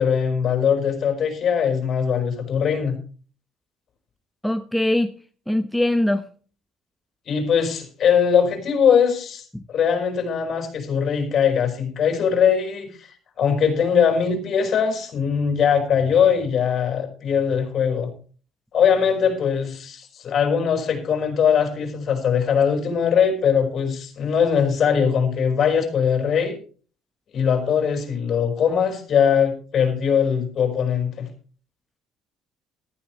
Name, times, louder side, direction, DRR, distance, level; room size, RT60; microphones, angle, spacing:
voice 1, 0.0-3.0 7.3-9.4 9.7-13.1 13.4-18.1 18.7-26.6 27.3-31.3, left 7 dB, 55° left, 4 dB, 5.5 m, -21 dB
voice 2, 4.4-5.1 5.5-6.2 9.5-9.6, left 1 dB, 5° left, 8 dB, 1.0 m, -22 dB
14.5 x 13.5 x 3.3 m, 0.40 s
supercardioid pair, 80°, 0 cm